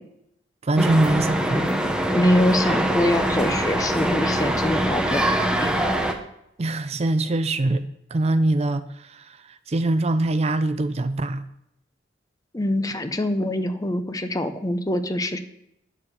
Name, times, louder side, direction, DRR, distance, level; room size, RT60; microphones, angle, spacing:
voice 1, 0.6-1.6 6.6-11.5, right 2 dB, 35° right, 0.5 m, -23 dB
sound 1, 0.8-6.1, right 1 dB, 5° right, 1.0 m, -23 dB
voice 2, 2.1-5.9 12.5-15.4, left 1 dB, 20° left, 0.8 m, -24 dB
10.5 x 7.1 x 6.8 m
head